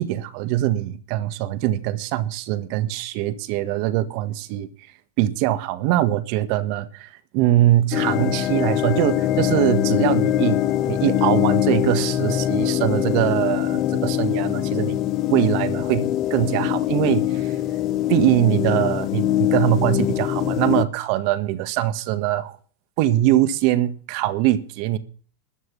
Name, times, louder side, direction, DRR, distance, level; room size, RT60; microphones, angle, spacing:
voice 1, 0.0-4.7 5.2-10.6 10.9-15.0 15.3-17.6 18.1-22.6 23.0-25.0, right 14 dB, 60° right, 1.6 m, -22 dB
sound 1, 7.9-20.9, left 13 dB, 45° left, 1.1 m, -23 dB
13.5 x 6.4 x 9.9 m
hypercardioid pair, 105°, 0 cm